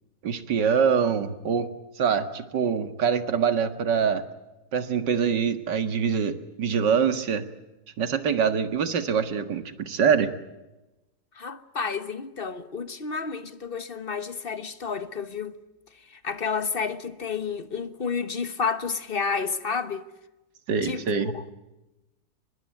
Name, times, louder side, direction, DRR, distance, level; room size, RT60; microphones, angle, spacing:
voice 1, 0.2-1.7 2.0-4.2 4.7-7.4 8.0-10.3 20.7-21.3, right 6 dB, 70° right, 2.3 m, -24 dB
voice 2, 11.3-15.6 16.1-20.1 20.8-21.0 21.3-21.5, left 5 dB, 35° left, 1.3 m, -31 dB
24.0 x 22.0 x 9.1 m
omnidirectional pair, 2.0 m